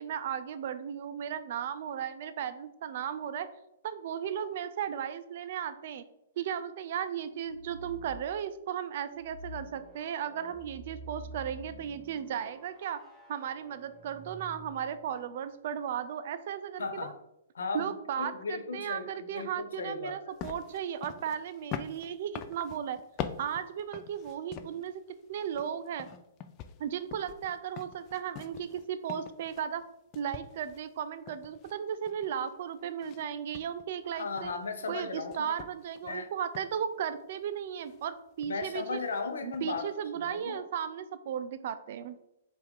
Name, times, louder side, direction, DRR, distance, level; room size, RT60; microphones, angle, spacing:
voice 1, 0.0-3.5 3.8-6.0 6.4-13.0 13.3-17.1 17.7-23.0 23.4-25.0 25.3-26.1 26.8-29.8 30.1-34.5 34.9-39.0 39.4-42.2, right 8 dB, 55° right, 12 dB, 0.3 m, -35 dB
sound 1, 7.4-8.3 9.1-15.2, right 1 dB, 10° right, 0.7 m, -49 dB
voice 2, 16.8-17.2 17.5-20.2 34.1-35.5 36.0-36.3 38.4-40.6, left 4 dB, 85° left, 7 dB, 0.6 m, -36 dB
sound 2, 20.4-25.0 25.3-29.9 30.1-32.5 33.0-33.2 33.5-34.9 35.3-36.1 36.5-36.8 37.8-38.1 38.4-38.8 39.1-39.2 39.5-39.9, left 9 dB, 35° left, 0.3 m, -44 dB
4.7 x 2.4 x 3.5 m, 0.85 s
hypercardioid pair, 135°, 0 cm